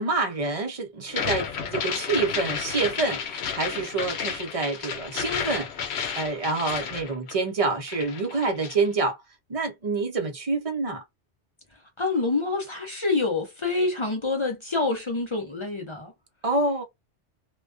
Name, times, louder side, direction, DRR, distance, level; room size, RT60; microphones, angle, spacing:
voice 1, 0.0-5.7 6.2-9.2 9.5-11.0 16.4-16.8, right 3 dB, 40° right, 0.6 m, -27 dB
sound 1, 1.1-7.6 7.9-8.9, left 7 dB, 75° left, 0.9 m, -31 dB
voice 2, 12.0-16.1, left 3 dB, 35° left, 0.5 m, -27 dB
2.3 x 2.2 x 2.4 m
omnidirectional pair, 1.2 m